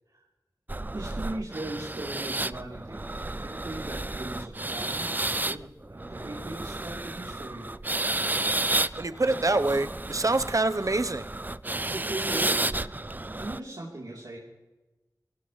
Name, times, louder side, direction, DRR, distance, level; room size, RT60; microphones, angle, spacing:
sound 1, 0.7-13.6, right 2 dB, 25° right, 0.4 m, -32 dB
voice 1, 0.9-3.0 3.3-5.1 5.4-7.7 11.7-12.8 13.3-14.4, right 1 dB, 70° right, -6 dB, 3.6 m, -38 dB
voice 2, 9.0-11.3, right 2 dB, 50° right, 11 dB, 0.9 m, -26 dB
23.5 x 17.0 x 3.3 m, 1.1 s
wide cardioid pair, 45°, 7 cm